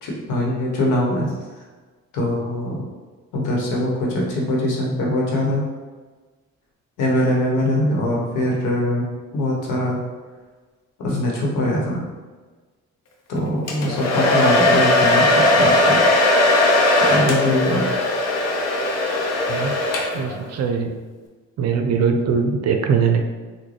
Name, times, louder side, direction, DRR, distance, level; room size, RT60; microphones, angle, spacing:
voice 1, 0.0-1.6 2.1-2.8 3.3-5.7 7.0-9.1 9.3-10.0 11.0-12.0 13.3-16.0 17.1-17.9, left 1 dB, 85° left, -2 dB, 1.0 m, -22 dB
Domestic sounds home sounds, 13.7-20.4, left 1 dB, 60° left, 0.7 m, -18 dB
voice 2, 20.1-20.9 21.6-23.2, right 6 dB, 60° right, 4 dB, 0.5 m, -21 dB
3.8 x 2.2 x 3.2 m, 1.3 s
cardioid pair, 90°, 30 cm